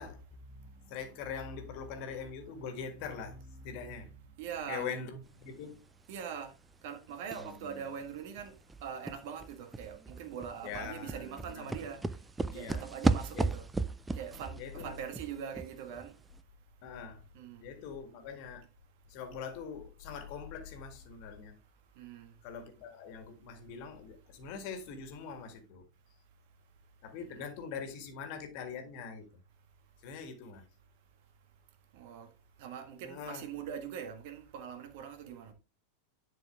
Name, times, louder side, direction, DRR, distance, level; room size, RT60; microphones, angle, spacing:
voice 1, 0.0-4.4 4.7-5.8 7.3-7.8 10.6-11.8 12.5-12.9 13.3-13.5 14.6-15.0 16.8-17.2 17.6-18.7 19.1-21.6 22.4-25.9 27.0-29.3 30.0-30.6 33.0-33.4, left 6 dB, 45° left, 1.7 m, -43 dB
voice 2, 4.4-4.9 6.1-6.6 6.8-13.6 14.1-16.2 17.3-17.7 21.9-22.4 27.3-27.5 31.9-35.5, right 8 dB, 50° right, 1.5 m, -43 dB
sound 1, 7.3-7.7 8.0-8.1 8.4-16.1 16.4-16.5, right 3 dB, 10° right, 0.4 m, -35 dB
10.5 x 4.5 x 3.5 m
figure-of-eight pair, 90°, 0 cm